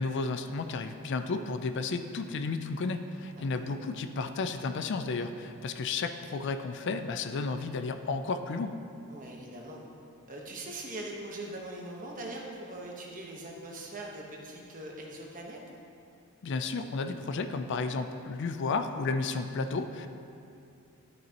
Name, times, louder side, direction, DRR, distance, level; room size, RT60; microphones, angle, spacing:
voice 1, 0.0-8.8 16.4-20.1, left 4 dB, 55° left, 8 dB, 0.4 m, -32 dB
voice 2, 9.1-9.8 10.3-15.6, right 1 dB, 40° right, -1 dB, 1.1 m, -41 dB
12.5 x 6.2 x 2.9 m, 2.6 s
head